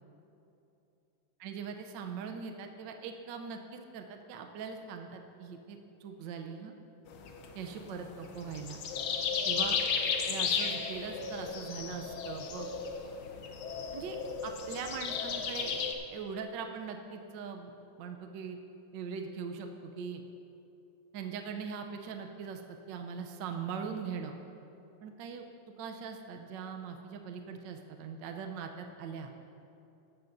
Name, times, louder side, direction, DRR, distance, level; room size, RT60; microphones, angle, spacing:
voice 1, 1.4-6.7 7.5-8.8 9.4-9.8 10.3-12.7 13.9-14.2 14.4-15.9 16.1-17.7 18.0-18.6 18.9-19.7 20.0-20.2 21.1-22.6 22.9-24.3 25.0-25.4 25.8-29.3, right 6 dB, 70° right, 5 dB, 1.2 m, -41 dB
sound 1, 7.1-15.9, left 6 dB, 70° left, 1.6 m, -34 dB
14.5 x 12.5 x 2.6 m, 2.8 s
omnidirectional pair, 2.4 m